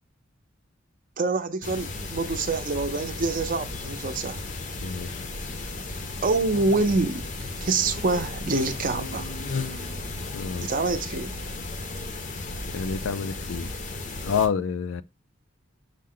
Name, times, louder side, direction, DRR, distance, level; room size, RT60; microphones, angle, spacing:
voice 1, 1.2-4.4 6.2-7.2 7.6-9.3 10.6-11.4, right 3 dB, 45° right, 0.6 m, -26 dB
sound 1, 1.6-14.5, left 2 dB, 40° left, 0.6 m, -34 dB
voice 2, 4.8-5.2 10.3-10.7 12.7-13.7 14.2-15.0, left 6 dB, 80° left, 0.4 m, -28 dB
6.5 x 2.2 x 3.7 m
head